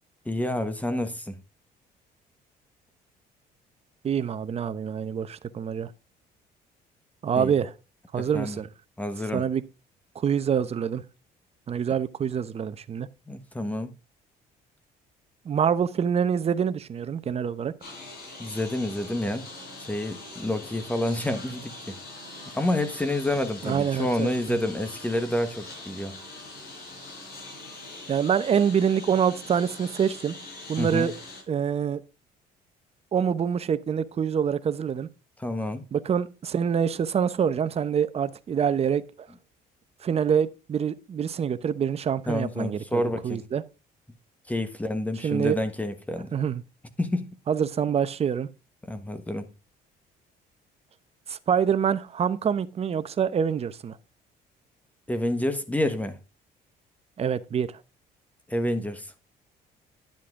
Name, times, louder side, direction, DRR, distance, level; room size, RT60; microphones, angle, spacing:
voice 1, 0.2-1.4 7.3-7.5 8.1-8.6 9.0-9.4 13.3-13.9 18.4-19.4 19.8-21.9 22.5-26.1 30.8-31.1 35.4-35.8 42.3-43.4 44.5-46.3 47.0-47.3 48.8-49.5 55.1-56.2 58.5-59.1, left 1 dB, 10° left, 1.3 m, -28 dB
voice 2, 4.0-5.9 7.2-7.7 8.1-8.7 9.3-9.6 10.1-11.0 11.7-13.1 15.4-17.7 23.6-24.6 28.1-30.4 30.7-31.1 31.5-32.0 33.1-35.1 35.9-39.0 40.0-43.6 45.2-45.6 46.3-46.6 47.5-48.5 51.3-54.0 57.2-57.8, right 7 dB, 35° right, 0.8 m, -26 dB
Engine, 17.8-31.4, left 2 dB, 65° left, 5.4 m, -43 dB
10.5 x 7.5 x 3.7 m
cardioid pair, 110°, 17 cm